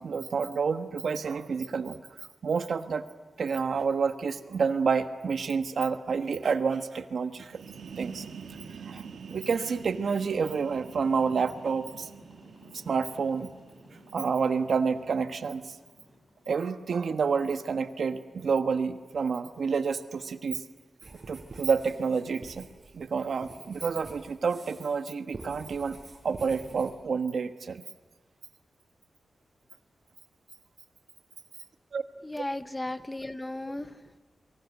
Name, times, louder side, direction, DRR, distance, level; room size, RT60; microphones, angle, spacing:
voice 1, 0.0-2.0 2.4-3.1 3.4-7.6 8.0-8.2 8.9-9.0 9.3-12.1 12.7-13.5 14.1-15.7 16.5-20.6 21.3-22.7 22.9-26.0 26.2-27.8 31.9-32.0, right 5 dB, 65° right, 8 dB, 1.3 m, -29 dB
sound 1, 7.4-16.5, left 1 dB, 35° left, 8.0 m, -56 dB
sound 2, 7.4-15.0, right 6 dB, 85° right, 1.5 m, -46 dB
sound 3, 21.0-25.0 25.3-26.9, right 3 dB, 35° right, 7.7 m, -47 dB
voice 2, 32.2-34.2, left 1 dB, 15° left, 11 dB, 0.9 m, -36 dB
28.5 x 23.5 x 8.3 m, 1.2 s
wide cardioid pair, 120°, 0 cm